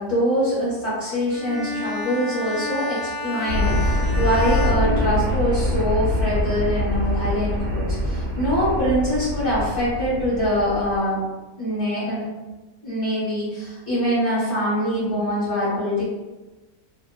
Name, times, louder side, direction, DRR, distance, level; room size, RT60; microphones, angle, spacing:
voice 1, 0.0-11.2 11.6-12.2 12.8-16.1, equal, 35° left, -12 dB, 1.1 m, -24 dB
Bowed string instrument, 1.3-5.8, left 2 dB, 75° left, 1.0 m, -30 dB
sound 1, 3.5-11.0, left 1 dB, 70° right, 1.0 m, -24 dB
2.7 x 2.2 x 2.2 m, 1.2 s
omnidirectional pair, 1.7 m